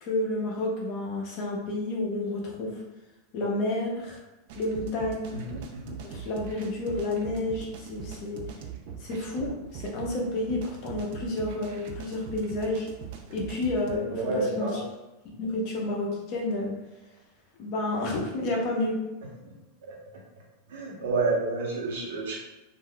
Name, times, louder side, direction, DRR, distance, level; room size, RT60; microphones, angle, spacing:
voice 1, 0.0-2.8 3.3-4.2 4.6-5.3 6.1-8.4 9.0-12.9 13.3-14.7 15.2-16.7 17.6-19.0, left 2 dB, 35° left, -1 dB, 0.6 m, -30 dB
sound 1, 4.5-14.0, right 8 dB, 50° right, 0.4 m, -41 dB
voice 2, 5.3-6.0 14.1-14.8 19.5-19.6 19.8-19.9 20.7-22.4, right 3 dB, 90° right, -2 dB, 0.9 m, -30 dB
2.5 x 2.2 x 3.6 m, 1.0 s
supercardioid pair, 180°, 0 cm